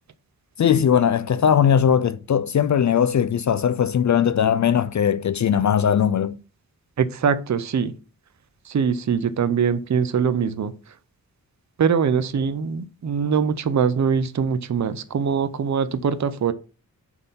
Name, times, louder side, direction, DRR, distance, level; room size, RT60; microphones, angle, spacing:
voice 1, 0.6-6.4, left 8 dB, 55° left, 0.4 m, -19 dB
voice 2, 7.0-7.9 8.6-10.7 11.8-16.5, right 6 dB, 50° right, 0.6 m, -22 dB
6.8 x 4.5 x 5.6 m
wide cardioid pair, 95°, 35 cm